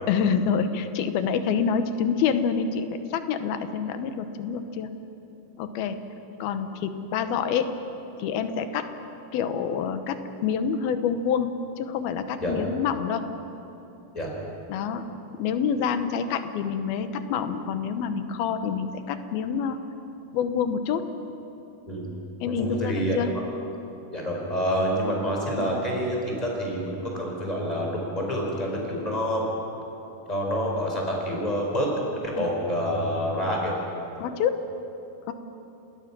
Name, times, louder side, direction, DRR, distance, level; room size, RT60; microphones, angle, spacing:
voice 1, 0.1-4.9 5.6-6.0 6.4-7.7 8.2-8.9 9.3-13.2 14.7-15.1 15.4-19.8 20.3-21.1 22.4-23.3 34.2-34.6 35.3-35.4, left 7 dB, 85° left, 9 dB, 2.9 m, -27 dB
voice 2, 22.5-23.2 24.1-29.5 30.3-33.7, equal, 10° left, -1 dB, 4.7 m, -27 dB
28.0 x 20.0 x 6.1 m, 3.0 s
omnidirectional pair, 4.2 m